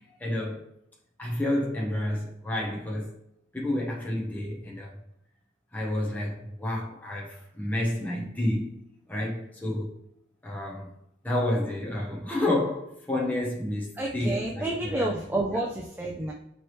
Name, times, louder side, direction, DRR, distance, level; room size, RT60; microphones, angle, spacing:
voice 1, 0.2-0.6 1.2-3.1 3.5-4.9 5.7-8.8 9.1-9.9 10.4-10.9 11.2-15.1 15.5-15.6, left 1 dB, 10° left, 0.8 m, -30 dB
voice 2, 14.0-16.3, right 2 dB, 10° right, 0.4 m, -29 dB
4.5 x 3.1 x 3.1 m
head